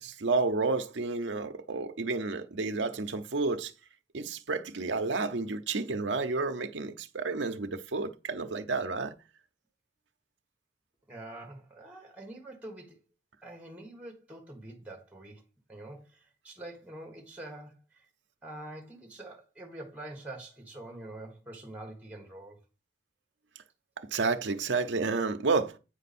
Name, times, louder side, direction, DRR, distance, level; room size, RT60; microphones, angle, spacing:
voice 1, 0.0-3.7 4.1-9.2 24.0-25.8, right 3 dB, 70° right, 0.7 m, -30 dB
voice 2, 11.1-13.0 13.4-15.4 15.7-18.1 18.4-22.6, right 1 dB, 10° right, 1.3 m, -45 dB
9.0 x 4.5 x 4.2 m
head